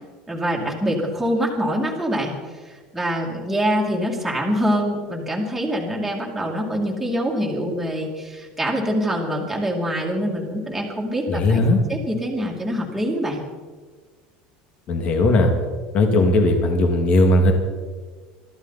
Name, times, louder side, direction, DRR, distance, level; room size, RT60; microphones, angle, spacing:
voice 1, 0.3-2.3 2.9-11.6 11.9-13.4, equal, 5° right, -3 dB, 2.4 m, -24 dB
voice 2, 11.3-11.8 14.9-15.5 15.9-17.5, left 2 dB, 35° left, 4 dB, 2.0 m, -17 dB
22.5 x 14.0 x 4.1 m, 1.4 s
cardioid pair, 165°, 3 cm